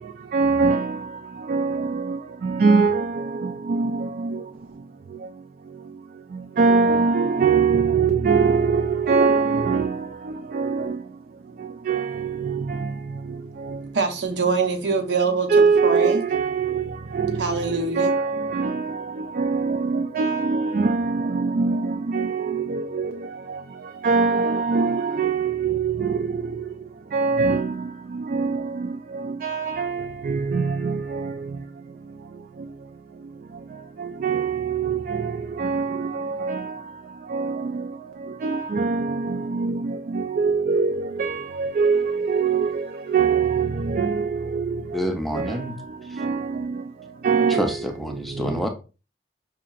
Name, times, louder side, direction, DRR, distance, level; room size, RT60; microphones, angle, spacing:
voice 1, 0.3-1.1 1.5-4.4 6.6-11.0 11.9-12.9 13.3-13.4 13.6-13.8 15.5-23.6 24.0-26.6 27.1-31.3 34.0-36.7 37.3-37.9 38.4-44.8 45.3-45.7 46.1-46.8 47.2-47.8 48.5-48.6, right 5 dB, 55° right, 0.3 m, -23 dB
voice 2, 13.9-15.5 15.8-16.2 17.4-18.1, right 4 dB, 80° right, 0.8 m, -23 dB
voice 3, 44.9-45.7 46.1-46.2 47.5-48.7, equal, ahead, 0.5 m, -27 dB
5.1 x 2.8 x 2.4 m
head